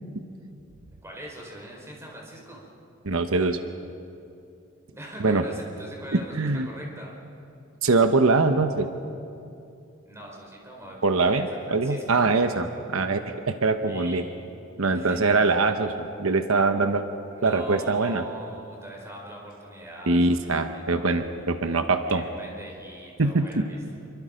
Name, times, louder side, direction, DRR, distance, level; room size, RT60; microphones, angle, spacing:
voice 1, 0.9-2.6 4.9-7.1 10.0-11.4 11.8-12.5 13.9-14.2 14.9-15.3 17.4-20.4 20.7-21.1 22.1-23.8, right 1 dB, 15° right, -2 dB, 4.4 m, -42 dB
voice 2, 3.0-3.6 5.2-5.4 6.1-6.7 7.8-8.9 11.0-14.2 14.8-17.1 17.4-18.2 20.1-22.3 23.2-23.6, right 3 dB, 85° right, 7 dB, 1.0 m, -23 dB
27.5 x 23.5 x 5.2 m, 2.6 s
head